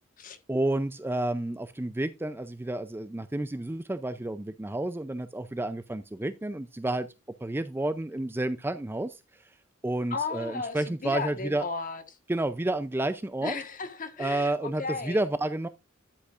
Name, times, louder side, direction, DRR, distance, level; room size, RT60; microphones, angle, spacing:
voice 1, 0.5-7.1 7.4-9.6 9.8-11.7 12.3-13.6 14.2-15.7, right 1 dB, 10° right, 0.4 m, -30 dB
voice 2, 10.1-12.0 13.4-15.2, left 4 dB, 40° left, 1.4 m, -35 dB
11.5 x 8.2 x 2.4 m
head